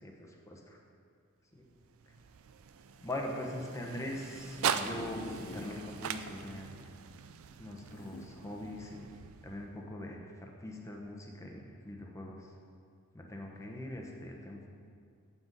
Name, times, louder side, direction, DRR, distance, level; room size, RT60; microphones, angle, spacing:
voice 1, 0.0-0.8 1.5-1.6 3.0-6.7 7.6-9.1 9.4-12.5 13.1-14.7, left 1 dB, 15° left, 0 dB, 1.0 m, -42 dB
sound 1, 1.6-9.9, right 7 dB, 65° right, 0.4 m, -41 dB
sound 2, 4.4-5.9 6.4-6.5 6.7-6.8 7.9-8.8 9.5-9.7, left 3 dB, 40° left, 0.5 m, -47 dB
6.9 x 6.0 x 7.5 m, 2.3 s
head